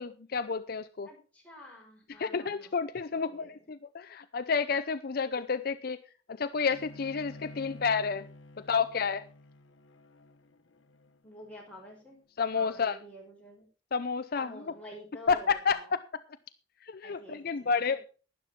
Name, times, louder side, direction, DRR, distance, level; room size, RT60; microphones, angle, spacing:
voice 1, 0.0-1.1 2.2-6.0 6.3-8.2 8.6-9.2 12.4-13.0 13.9-14.7 15.3-16.0 16.8-18.1, left 5 dB, 50° left, 0.5 m, -30 dB
voice 2, 1.1-2.7 3.1-3.6 11.2-12.2 12.5-13.6 14.3-15.9 17.0-17.9, equal, 5° left, 5.4 m, -49 dB
Bowed string instrument, 6.7-12.0, left 1 dB, 75° left, 1.1 m, -50 dB
12.0 x 11.0 x 4.3 m
head